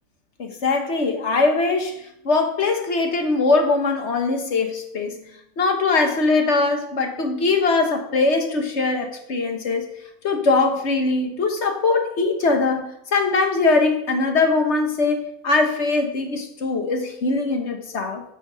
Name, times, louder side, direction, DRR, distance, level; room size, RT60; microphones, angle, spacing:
voice 1, 0.4-5.2 5.6-9.9 10.2-18.2, left 3 dB, 45° left, 1.6 m, -21 dB
9.6 x 6.8 x 6.4 m
omnidirectional pair, 1.8 m